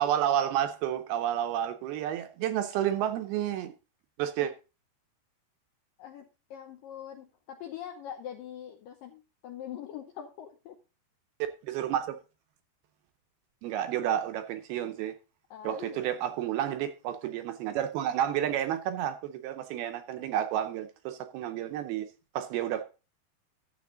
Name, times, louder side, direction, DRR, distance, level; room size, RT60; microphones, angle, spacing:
voice 1, 0.0-3.7 4.2-4.5 11.6-12.2 13.6-15.1 15.6-22.1 22.4-22.8, right 11 dB, 75° right, 2.4 m, -30 dB
voice 2, 6.0-10.8 15.5-16.0, left 10 dB, 80° left, 2.0 m, -43 dB
12.0 x 7.8 x 3.8 m
omnidirectional pair, 5.0 m